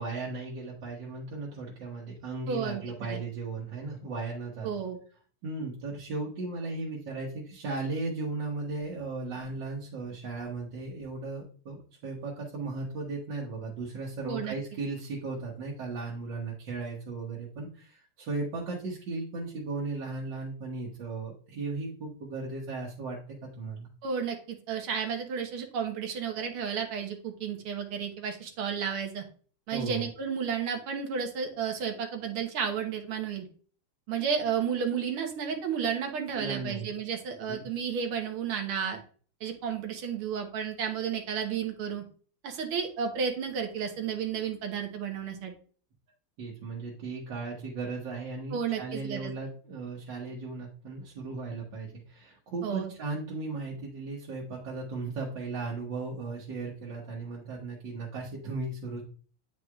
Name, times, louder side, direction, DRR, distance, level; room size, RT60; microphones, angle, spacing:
voice 1, 0.0-4.8 5.4-23.9 29.7-30.1 36.3-36.9 37.5-37.7 46.4-59.0, right 3 dB, 65° right, -3 dB, 1.8 m, -36 dB
voice 2, 2.5-2.8 3.1-3.2 4.6-5.0 14.3-14.6 24.0-29.2 29.7-33.5 34.1-39.0 39.4-42.0 42.4-45.5 48.5-49.3 52.6-52.9, right 7 dB, 85° right, 4 dB, 1.9 m, -32 dB
9.3 x 4.7 x 2.3 m, 0.43 s
omnidirectional pair, 2.3 m